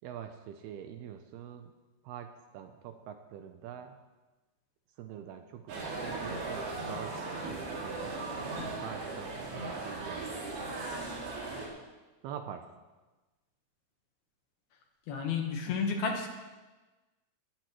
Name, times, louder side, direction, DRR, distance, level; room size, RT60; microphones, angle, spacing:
voice 1, 0.0-1.7 2.0-4.0 5.0-8.2 8.8-10.4 12.2-12.7, right 9 dB, 80° right, 6 dB, 2.5 m, -45 dB
sound 1, 5.7-11.7, right 3 dB, 65° right, 4.6 m, -37 dB
voice 2, 15.1-16.3, left 5 dB, 70° left, 3 dB, 3.0 m, -31 dB
19.5 x 14.0 x 3.1 m, 1.2 s
omnidirectional pair, 5.0 m